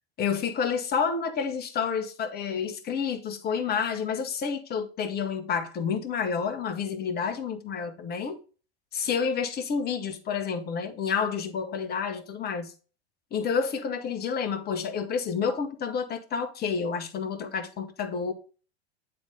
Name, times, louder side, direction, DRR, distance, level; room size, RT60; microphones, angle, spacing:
voice 1, 0.2-8.4 8.9-12.7 13.3-18.3, left 6 dB, 30° left, 1.2 m, -29 dB
8.9 x 3.6 x 3.7 m
figure-of-eight pair, 85°, 33 cm